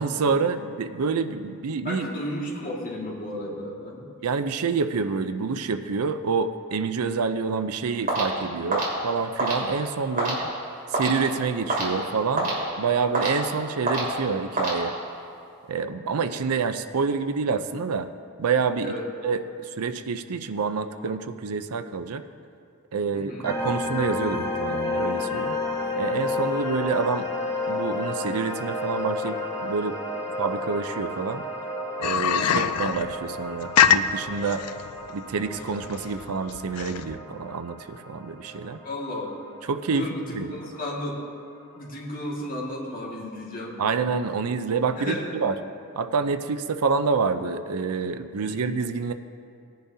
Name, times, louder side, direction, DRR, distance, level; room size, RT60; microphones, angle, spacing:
voice 1, 0.0-2.0 4.2-10.5 10.9-12.5 12.8-14.9 15.7-18.1 18.4-18.9 19.2-22.2 22.9-25.6 26.0-27.3 27.7-30.0 30.4-31.4 32.0-34.7 35.1-38.8 39.7-40.5 43.8-45.5 46.0-49.1, right 5 dB, 80° right, 10 dB, 0.5 m, -27 dB
voice 2, 1.8-4.1 10.1-10.3 18.8-19.1 23.1-23.5 29.2-29.3 32.3-32.7 38.8-39.4 39.9-41.2 41.8-43.8 45.0-45.3 48.4-48.6, left 1 dB, 40° left, -3 dB, 2.0 m, -34 dB
sound 1, 8.1-15.3, right 1 dB, 40° right, 2.9 m, -29 dB
sound 2, 23.4-40.4, left 2 dB, 15° left, 1.1 m, -31 dB
sound 3, 32.0-37.2, left 8 dB, 85° left, 0.4 m, -24 dB
18.5 x 10.5 x 2.8 m, 2.4 s
head